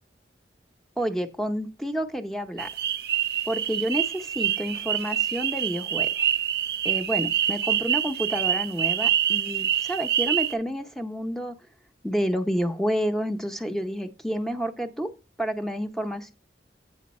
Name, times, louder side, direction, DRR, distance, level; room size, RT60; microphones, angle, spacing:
voice 1, 1.0-2.7 3.5-6.1 6.8-11.6 12.0-15.1 15.4-16.3, equal, ahead, 6 dB, 0.6 m, -29 dB
sound 1, 2.6-10.5, right 10 dB, 60° right, 0.6 m, -26 dB
8.5 x 5.2 x 4.1 m, 0.31 s
head